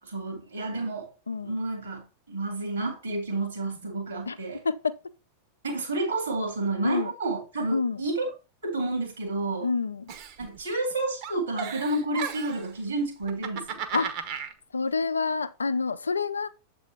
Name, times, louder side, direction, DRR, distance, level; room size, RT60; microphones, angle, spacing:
voice 1, 0.0-1.1 1.4-4.6 5.6-8.3 8.6-9.7 10.4-13.9, right 2 dB, 75° right, 2.0 m, -30 dB
voice 2, 4.7-5.0 6.8-7.1 7.7-8.0 9.6-10.0 13.9-14.1 14.7-16.5, left 4 dB, 75° left, 0.4 m, -27 dB
Giggle, 10.1-10.9 11.2-12.7 13.2-14.5, right 7 dB, 45° right, 0.9 m, -35 dB
7.4 x 3.8 x 4.2 m
figure-of-eight pair, 90°, 0 cm